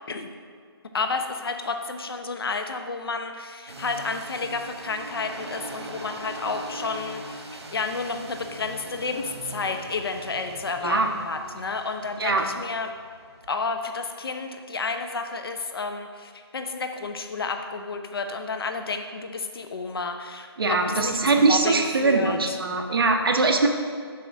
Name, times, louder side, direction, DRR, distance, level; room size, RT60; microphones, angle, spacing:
voice 1, 0.9-12.9 13.5-22.6, left 4 dB, 60° left, 6 dB, 0.8 m, -31 dB
sound 1, 3.7-13.5, right 2 dB, 90° right, 1.3 m, -41 dB
voice 2, 20.6-23.7, right 3 dB, 60° right, 2 dB, 1.0 m, -22 dB
7.7 x 5.3 x 4.7 m, 2.1 s
hypercardioid pair, 170°, 14 cm